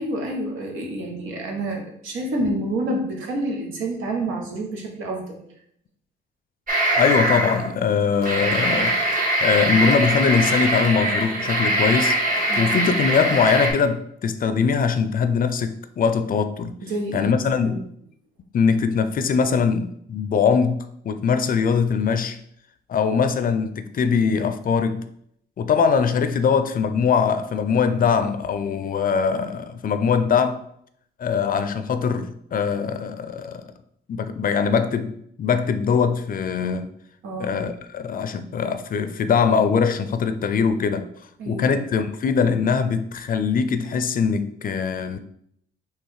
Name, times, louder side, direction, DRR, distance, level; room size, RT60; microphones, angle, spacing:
voice 1, 0.0-5.4 12.5-12.7 16.8-17.8 37.2-37.5 41.4-41.7, right 1 dB, 85° right, 0 dB, 1.2 m, -28 dB
sound 1, 6.7-7.7 8.1-13.7, right 1 dB, 45° right, 1.4 m, -22 dB
voice 2, 6.9-9.0 9.4-12.2 12.6-16.7 17.1-17.8 18.5-22.4 22.9-25.1 25.6-30.6 31.2-33.6 34.1-36.9 37.4-41.1 41.5-45.2, left 6 dB, 45° left, 10 dB, 0.4 m, -22 dB
3.3 x 3.1 x 4.7 m, 0.70 s
cardioid pair, 90°, 20 cm